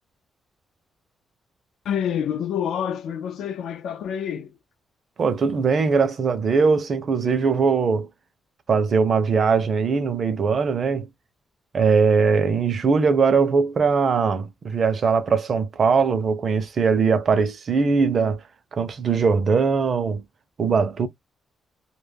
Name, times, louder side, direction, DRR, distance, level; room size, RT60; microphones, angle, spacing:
voice 1, 1.8-4.6, left 9 dB, 85° left, 0.3 m, -27 dB
voice 2, 5.2-8.1 8.7-11.1 11.7-18.4 18.7-20.2 20.6-21.1, right 5 dB, 40° right, 0.5 m, -20 dB
2.2 x 2.0 x 3.3 m
wide cardioid pair, 170°, 0 cm